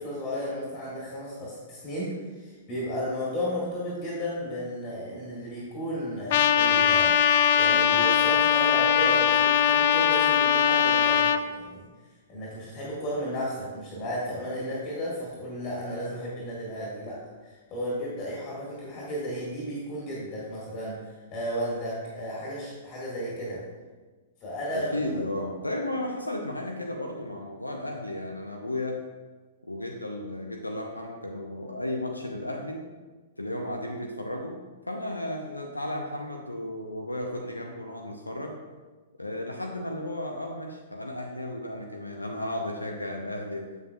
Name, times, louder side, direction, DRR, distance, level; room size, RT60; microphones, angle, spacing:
voice 1, 0.0-7.2 7.6-11.8 12.3-23.6 24.4-25.2, equal, 25° left, -6 dB, 2.0 m, -34 dB
Trumpet, 6.3-11.4, left 9 dB, 50° left, 0.3 m, -21 dB
voice 2, 24.7-29.0 29.6-32.8 33.4-34.6 34.9-38.6 39.2-43.7, left 1 dB, 85° left, 2 dB, 0.7 m, -34 dB
7.8 x 7.6 x 2.4 m, 1.3 s
figure-of-eight pair, 105°, 0 cm